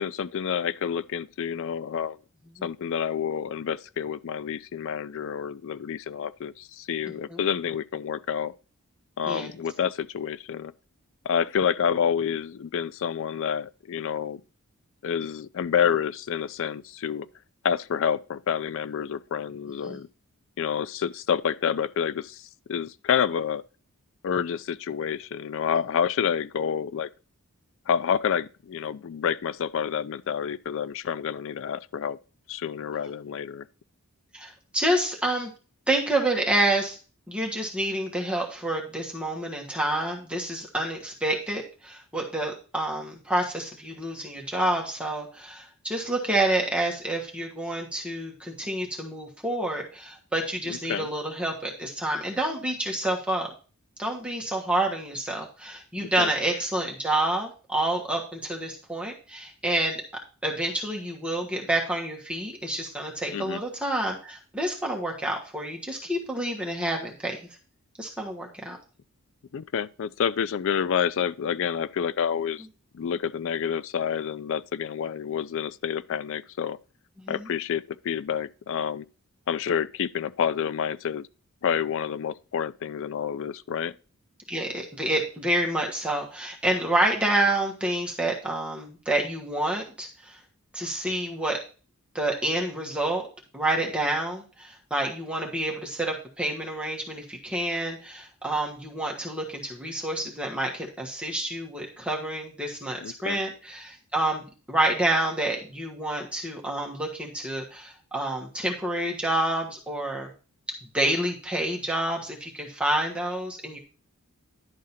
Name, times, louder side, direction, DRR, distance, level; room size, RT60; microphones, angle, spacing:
voice 1, 0.0-2.2 2.6-8.5 9.2-10.7 11.2-14.4 15.0-17.3 17.6-20.1 20.6-23.6 24.2-27.1 27.9-32.2 32.5-33.7 50.7-51.1 56.0-56.3 63.3-63.6 69.5-72.7 72.9-76.8 77.3-79.0 79.5-81.3 81.6-83.9 103.0-103.4, left 7 dB, 65° left, 0.4 m, -28 dB
voice 2, 34.3-35.5 35.9-37.0 37.3-53.5 54.0-60.0 60.4-67.4 68.0-68.8 77.2-77.5 84.5-90.4 90.7-91.6 92.1-93.2 93.5-110.3 110.9-113.8, right 1 dB, 5° right, 1.3 m, -28 dB
11.0 x 3.8 x 5.7 m
head